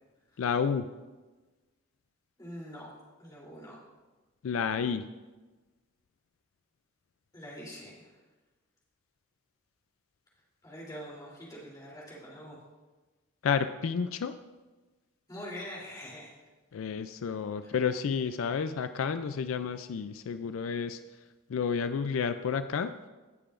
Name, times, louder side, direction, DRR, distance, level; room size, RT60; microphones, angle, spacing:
voice 1, 0.4-0.9 4.4-5.0 13.4-14.3 16.7-21.0 21.5-22.9, left 6 dB, 80° left, 10 dB, 0.4 m, -30 dB
voice 2, 2.4-2.9 3.2-3.8 7.3-8.2 10.6-12.6 15.3-16.3 17.6-17.7, equal, 20° left, -6 dB, 3.2 m, -44 dB
18.0 x 6.8 x 2.5 m, 1.2 s
head